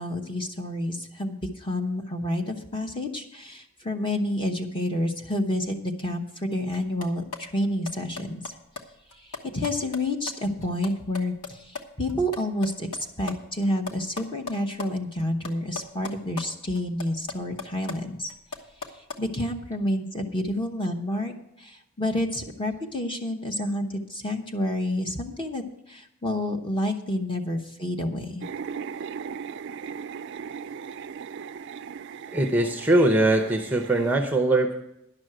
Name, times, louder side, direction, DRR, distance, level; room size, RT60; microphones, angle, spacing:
voice 1, 0.0-8.5 9.2-18.3 19.2-28.4, left 1 dB, 20° left, 3 dB, 1.0 m, -29 dB
sound 1, 6.7-11.8 12.1-14.9 15.2-16.5 16.7-19.2, left 4 dB, 90° left, 1.2 m, -38 dB
sound 2, 28.4-34.2, right 6 dB, 50° right, 0.3 m, -38 dB
voice 2, 32.3-34.7, right 2 dB, 10° right, 4 dB, 0.6 m, -21 dB
11.0 x 6.2 x 7.7 m, 0.83 s
head